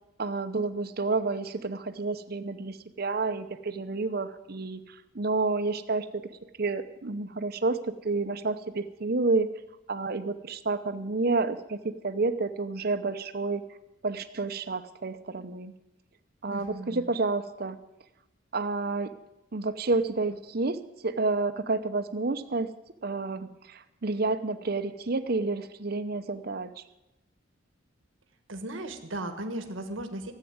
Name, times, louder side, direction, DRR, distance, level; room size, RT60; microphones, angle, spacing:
voice 1, 0.2-4.8 5.1-6.3 6.6-9.5 9.9-13.6 14.0-15.7 16.4-17.8 18.5-19.1 19.5-22.7 23.0-26.7, right 3 dB, 50° right, 11 dB, 0.8 m, -30 dB
voice 2, 16.5-17.1 28.5-30.3, right 1 dB, 80° right, 7 dB, 1.5 m, -36 dB
14.0 x 8.4 x 9.5 m, 0.93 s
head